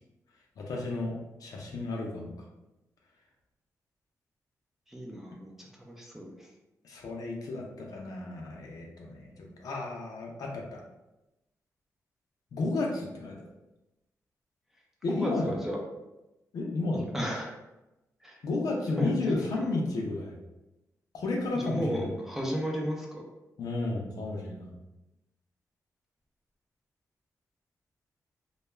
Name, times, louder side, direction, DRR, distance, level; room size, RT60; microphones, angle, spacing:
voice 1, 0.6-2.3 6.8-10.8 12.5-13.4 15.0-15.5 16.5-17.1 18.4-20.4 21.1-22.1 23.6-24.7, left 2 dB, 75° left, 0 dB, 0.5 m, -32 dB
voice 2, 4.9-6.5 15.1-15.8 17.0-17.6 18.2-18.4 19.0-19.1 19.6-19.7 21.5-23.2, equal, 5° right, -1 dB, 0.5 m, -34 dB
2.2 x 2.2 x 3.0 m, 0.97 s
cardioid pair, 110°, 6 cm